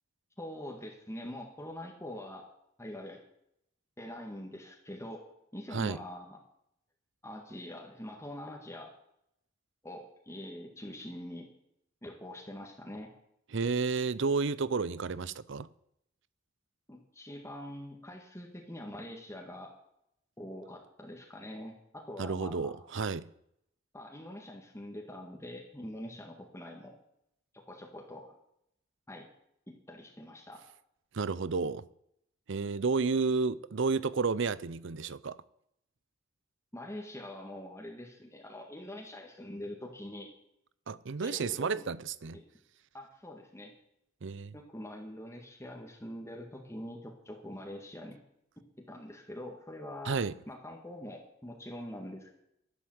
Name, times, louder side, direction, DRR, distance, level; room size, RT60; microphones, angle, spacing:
voice 1, 0.4-2.5 2.8-3.2 4.0-5.2 5.5-6.4 7.2-8.9 9.8-11.5 12.0-13.1 16.9-19.7 20.4-22.7 23.9-27.0 27.7-28.4 29.1-29.3 29.7-30.6 36.7-40.3 41.2-41.8 42.3-42.4 42.9-43.7 44.5-48.2 48.8-50.2 50.5-52.3, left 1 dB, 15° left, 1.9 m, -44 dB
voice 2, 13.5-15.7 22.2-23.3 31.1-31.8 32.5-35.4 40.9-42.4 44.2-44.5 50.1-50.3, right 4 dB, 65° right, 0.6 m, -31 dB
12.0 x 11.5 x 7.9 m
head